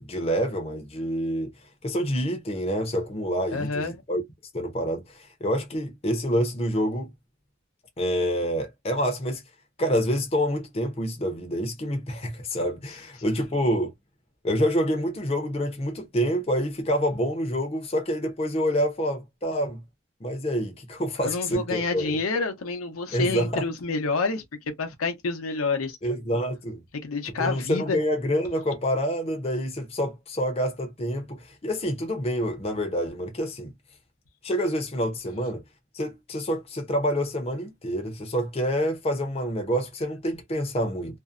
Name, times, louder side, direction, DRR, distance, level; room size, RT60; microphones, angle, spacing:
voice 1, 0.0-1.5 1.8-4.2 4.5-7.1 8.0-9.4 9.8-13.9 14.4-19.8 20.2-22.2 23.1-23.6 26.0-26.8 27.4-33.7 34.4-35.6 35.9-41.2, equal, 30° left, 0.6 m, -27 dB
voice 2, 3.5-4.0 13.2-13.4 21.2-26.0 27.0-28.0, left 4 dB, 90° left, 0.7 m, -28 dB
2.6 x 2.0 x 2.4 m
head